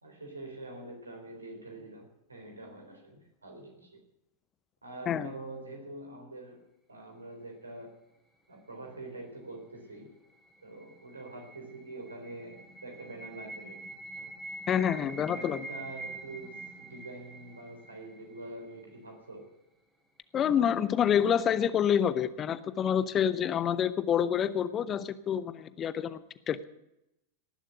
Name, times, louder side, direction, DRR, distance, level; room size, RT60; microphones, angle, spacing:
voice 1, 0.0-4.0 4.8-6.6 6.9-8.0 8.5-10.2 10.6-14.3 15.0-19.5, right 2 dB, 80° right, 3 dB, 3.7 m, -45 dB
sound 1, 10.1-19.0, right 2 dB, 5° right, 3.2 m, -46 dB
voice 2, 14.7-15.7 20.3-26.2 26.5-26.6, left 8 dB, 25° left, 16 dB, 0.7 m, -27 dB
18.0 x 7.5 x 8.1 m, 0.87 s
figure-of-eight pair, 90°, 0 cm